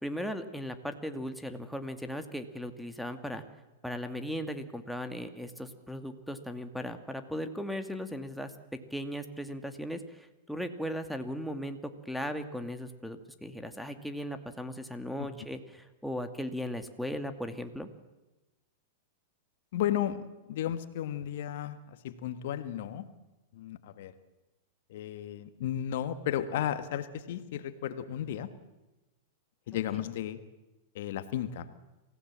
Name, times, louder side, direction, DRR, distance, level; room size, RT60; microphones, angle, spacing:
voice 1, 0.0-3.4 3.8-8.5 8.9-17.9 29.7-29.8, equal, ahead, 6 dB, 2.2 m, -37 dB
voice 2, 19.7-23.1 23.5-24.1 24.9-28.5 29.7-30.4 30.9-31.7, left 11 dB, 65° left, 12 dB, 1.5 m, -34 dB
27.0 x 16.5 x 7.5 m, 1.1 s
hypercardioid pair, 105°, 0 cm